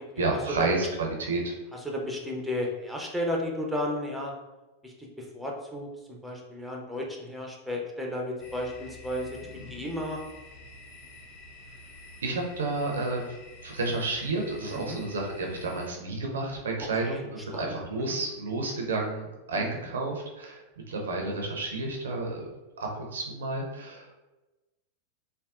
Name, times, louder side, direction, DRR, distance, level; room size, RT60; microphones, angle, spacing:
voice 1, 0.2-1.5 12.2-13.2 13.6-20.6 20.9-22.5 22.8-24.1, right 3 dB, 65° right, 0 dB, 0.5 m, -31 dB
voice 2, 1.7-4.3 4.8-9.4 9.7-10.2 14.7-15.0 17.0-17.2 17.5-18.1 19.5-19.8, left 1 dB, ahead, -1 dB, 0.5 m, -34 dB
sound 1, 8.4-15.9, left 3 dB, 45° left, 0.7 m, -48 dB
3.4 x 2.2 x 2.3 m, 1.1 s
figure-of-eight pair, 90°, 0 cm